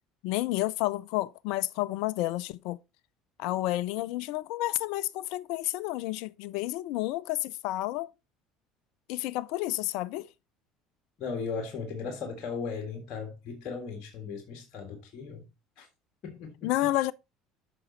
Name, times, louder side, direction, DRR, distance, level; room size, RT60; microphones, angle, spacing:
voice 1, 0.2-2.8 3.4-8.1 9.1-10.3 16.6-17.1, left 16 dB, 70° left, 0.4 m, -30 dB
voice 2, 11.2-15.4 15.8-15.9 16.2-16.7, left 5 dB, 55° left, 1.7 m, -37 dB
8.6 x 6.0 x 4.0 m
hypercardioid pair, 70°, 0 cm